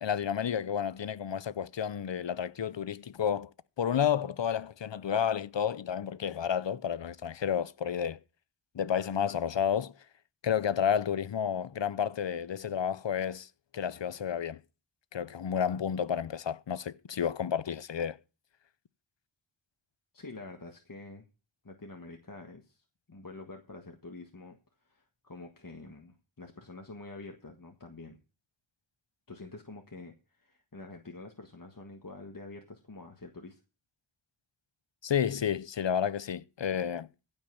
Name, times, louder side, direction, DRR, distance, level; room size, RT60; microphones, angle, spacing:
voice 1, 0.0-3.5 3.8-8.2 8.7-9.9 10.4-13.5 13.7-14.6 15.1-18.2 35.0-37.1, left 8 dB, 60° left, 0.7 m, -31 dB
voice 2, 20.1-21.3 21.6-28.2 29.3-33.6, left 3 dB, 40° left, 1.6 m, -47 dB
15.5 x 5.6 x 6.9 m
wide cardioid pair, 45°, 49 cm